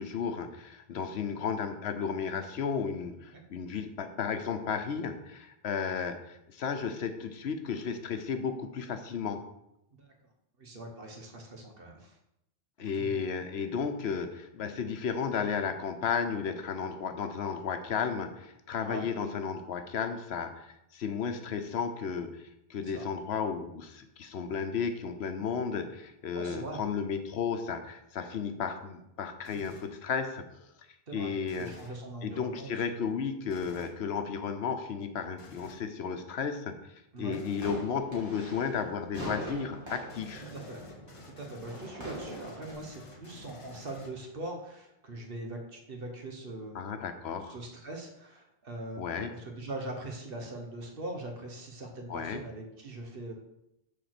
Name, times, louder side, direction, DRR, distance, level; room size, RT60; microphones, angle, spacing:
voice 1, 0.0-9.4 12.8-22.4 22.7-30.4 31.1-31.7 32.2-36.7 37.2-40.5 46.7-47.5 49.0-49.3 52.1-52.4, left 6 dB, 85° left, 7 dB, 1.0 m, -33 dB
voice 2, 10.6-12.2 12.8-13.3 18.9-19.1 22.8-23.1 26.3-26.8 31.1-31.3 31.6-33.1 37.1-37.4 40.5-40.9 41.4-47.0 47.5-53.3, right 2 dB, 65° right, 2 dB, 1.5 m, -42 dB
sound 1, 29.5-30.0 31.4-32.0 33.5-34.0 35.4-35.9 37.3-37.8 40.1-44.5, left 2 dB, 35° left, 0.8 m, -51 dB
sound 2, 37.4-42.7, right 1 dB, 25° right, 2.6 m, -43 dB
6.6 x 4.2 x 6.0 m, 0.83 s
omnidirectional pair, 1.0 m